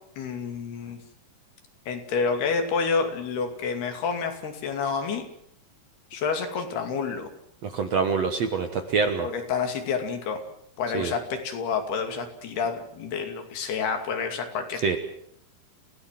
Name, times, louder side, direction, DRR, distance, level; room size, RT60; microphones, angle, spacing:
voice 1, 0.2-1.0 1.9-5.3 6.1-7.3 9.2-10.4 10.8-15.0, left 5 dB, 75° left, 6 dB, 4.5 m, -29 dB
voice 2, 7.6-9.3 10.9-11.1 14.8-15.0, right 5 dB, 55° right, 7 dB, 2.0 m, -25 dB
29.0 x 17.0 x 7.5 m, 0.71 s
omnidirectional pair, 4.7 m